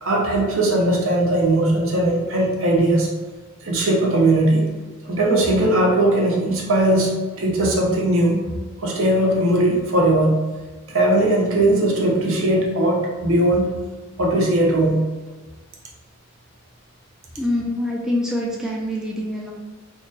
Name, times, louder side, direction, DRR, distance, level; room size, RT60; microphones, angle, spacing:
voice 1, 0.0-3.1 3.6-4.7 5.0-8.5 8.8-10.4 10.9-13.7 14.2-15.0, right 1 dB, 75° right, -2 dB, 0.8 m, -19 dB
voice 2, 17.4-19.5, left 1 dB, 5° right, -3 dB, 0.3 m, -25 dB
2.9 x 2.6 x 3.8 m, 1.3 s
head